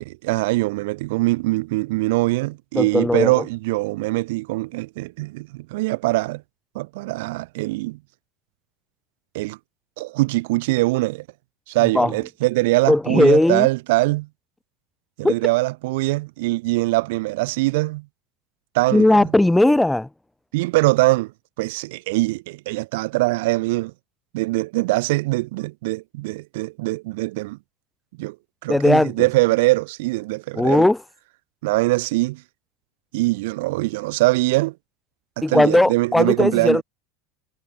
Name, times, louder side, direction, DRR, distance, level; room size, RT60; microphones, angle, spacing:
voice 1, 0.0-6.4 6.7-8.0 9.3-9.6 10.0-11.3 11.7-14.3 15.2-18.1 18.7-19.2 20.5-21.3 21.6-23.9 24.3-27.6 28.2-28.4 28.6-30.9 31.6-32.4 33.1-34.8 35.4-36.8, right 21 dB, 75° right, 4.0 m, -22 dB
voice 2, 2.8-3.3 11.9-12.1 12.9-13.7 15.2-15.3 18.9-20.1 28.7-29.1 30.6-31.0 35.4-36.8, left 1 dB, 5° left, 2.0 m, -17 dB
supercardioid pair, 140°, 0 cm